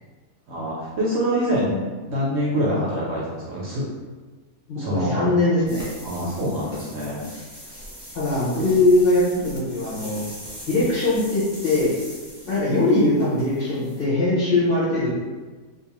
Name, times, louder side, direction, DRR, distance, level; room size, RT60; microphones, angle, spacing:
voice 1, 0.5-3.9 4.8-5.4 6.0-7.3 8.5-8.7 12.4-12.6, equal, 65° right, -5 dB, 0.7 m, -25 dB
voice 2, 4.7-5.9 8.1-10.2 10.7-11.9 12.5-15.1, left 2 dB, 55° left, -8 dB, 0.7 m, -21 dB
sound 1, 5.7-14.0, equal, 15° right, 0.7 m, -41 dB
2.4 x 2.3 x 2.8 m, 1.3 s
omnidirectional pair, 1.5 m